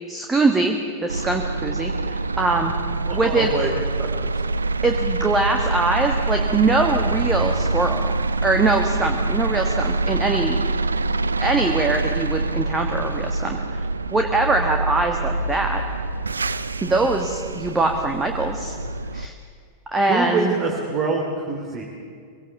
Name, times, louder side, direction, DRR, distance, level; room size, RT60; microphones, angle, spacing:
voice 1, 0.1-2.7 3.1-3.5 4.8-8.1 8.4-10.6 11.4-13.8 14.1-15.8 16.8-18.7 19.1-19.3 19.9-20.6, right 3 dB, 15° right, 4 dB, 1.5 m, -22 dB
sound 1, 1.1-19.3, right 3 dB, 75° right, 0.6 m, -25 dB
voice 2, 3.1-3.7 4.0-4.1 16.9-17.0 20.1-21.8, right 4 dB, 35° right, 1 dB, 2.9 m, -25 dB
23.0 x 17.5 x 7.1 m, 2.2 s
figure-of-eight pair, 90°, 0 cm